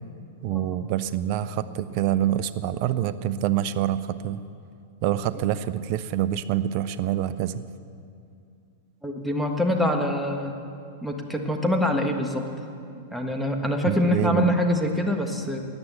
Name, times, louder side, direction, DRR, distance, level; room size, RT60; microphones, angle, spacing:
voice 1, 0.4-4.4 5.0-7.6 13.9-14.6, right 11 dB, 45° right, 14 dB, 0.6 m, -26 dB
voice 2, 9.0-10.6 11.0-12.4 13.1-15.6, left 1 dB, ahead, 3 dB, 1.5 m, -25 dB
14.0 x 9.4 x 8.3 m, 2.4 s
figure-of-eight pair, 100°, 0 cm